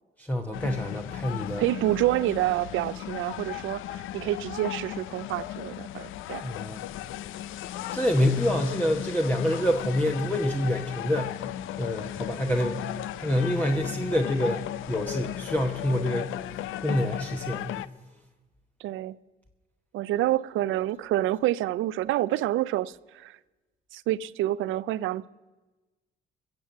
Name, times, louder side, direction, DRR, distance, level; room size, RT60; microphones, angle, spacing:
voice 1, 0.2-1.6 6.4-6.9 7.9-12.8 13.2-16.3 16.8-17.8, left 1 dB, 10° left, 1.0 m, -27 dB
sound 1, 0.5-17.9, left 13 dB, 85° left, 0.5 m, -36 dB
voice 2, 1.6-6.4 18.8-19.2 19.9-23.4 23.9-25.3, right 14 dB, 80° right, 0.4 m, -28 dB
21.5 x 7.6 x 7.3 m
cardioid pair, 90°, 20 cm